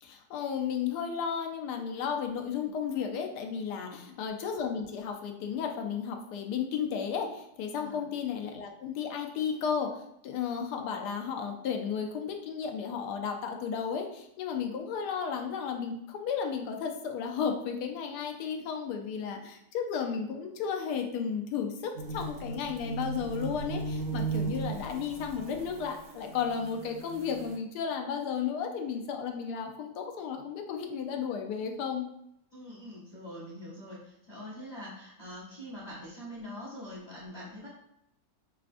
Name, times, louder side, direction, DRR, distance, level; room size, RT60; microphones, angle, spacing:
voice 1, 0.0-32.1, left 7 dB, 85° left, 4 dB, 1.2 m, -33 dB
voice 2, 3.8-4.1 7.8-8.0 32.5-37.7, equal, 35° left, -6 dB, 0.8 m, -44 dB
sound 1, 22.0-27.6, right 4 dB, 65° right, 0.8 m, -37 dB
5.0 x 2.3 x 2.5 m, 0.78 s
omnidirectional pair, 1.7 m